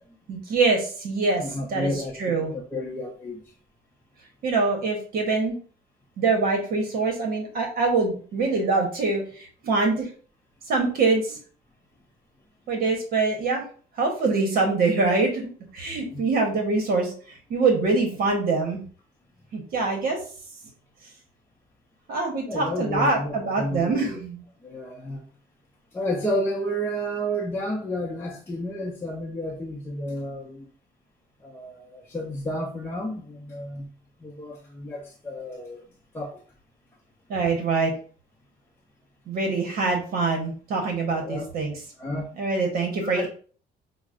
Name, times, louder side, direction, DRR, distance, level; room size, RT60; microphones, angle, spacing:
voice 1, 0.3-1.4 1.7-1.9 2.2-2.5 4.4-5.5 6.2-10.1 10.7-11.4 12.7-13.6 14.0-15.5 15.7-18.8 19.5-20.2 22.1-24.4 37.3-37.9 39.3-41.7 42.4-43.3, right 3 dB, 60° right, 1.0 m, -24 dB
voice 2, 1.4-3.5 15.9-16.3 22.5-24.2 24.6-25.2 25.9-30.7 31.4-33.9 34.2-35.8 36.1-36.4 41.2-41.5 42.0-42.3 43.0-43.3, equal, 15° left, 0.6 m, -31 dB
5.7 x 2.0 x 2.4 m
cardioid pair, 110°, 17 cm